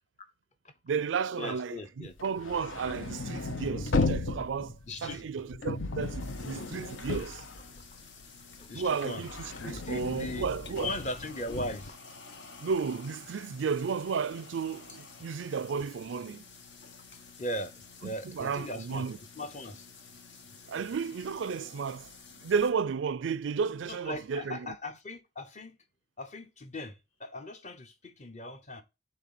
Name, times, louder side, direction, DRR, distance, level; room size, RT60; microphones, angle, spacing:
voice 1, 0.9-4.7 5.0-7.4 8.7-10.9 12.6-16.4 18.0-19.2 20.7-22.1 22.4-24.7, right 5 dB, 80° right, 0.4 m, -33 dB
voice 2, 1.4-2.2 4.9-5.3 8.6-9.2 9.6-10.5 10.8-12.0 17.4-17.7 18.0-19.1 19.4-19.9 23.8-25.8 26.2-28.8, left 1 dB, 35° left, 0.9 m, -39 dB
sound 1, 2.1-8.2 8.6-11.9, left 3 dB, 85° left, 0.8 m, -35 dB
sound 2, 6.2-22.7, left 4 dB, 70° left, 1.3 m, -51 dB
7.5 x 3.2 x 5.9 m
head